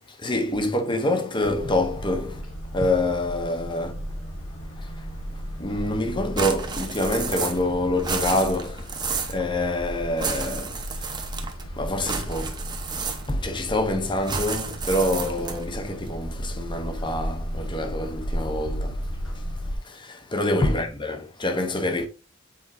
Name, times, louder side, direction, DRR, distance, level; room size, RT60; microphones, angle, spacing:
voice 1, 0.2-2.4 2.7-3.9 5.6-8.8 9.3-10.7 11.8-12.6 13.0-18.9 20.0-22.1, left 1 dB, 20° left, 0.9 m, -26 dB
sound 1, 1.4-19.8, equal, 70° left, 1.6 m, -34 dB
sound 2, 6.4-7.7 8.0-9.4 10.2-11.6 12.0-13.5 14.2-15.7, right 5 dB, 20° right, 0.9 m, -31 dB
7.8 x 4.6 x 2.6 m
head